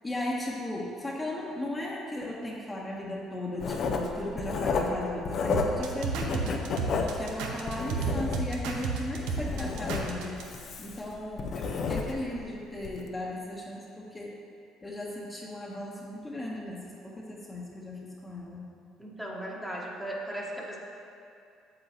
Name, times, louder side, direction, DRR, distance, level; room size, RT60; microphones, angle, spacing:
voice 1, 0.0-6.6 6.9-10.4 10.8-14.3 14.8-18.7, left 1 dB, 20° left, -4 dB, 1.2 m, -36 dB
Writing, 3.6-5.9 6.2-8.7 9.1-12.3 12.8-13.0, left 4 dB, 55° left, 0.7 m, -31 dB
sound 1, 5.5-10.4, right 5 dB, 80° right, 0.8 m, -32 dB
voice 2, 19.0-20.8, right 1 dB, 5° right, -3 dB, 1.3 m, -37 dB
8.0 x 7.2 x 3.0 m, 2.6 s
supercardioid pair, 75°, 0 cm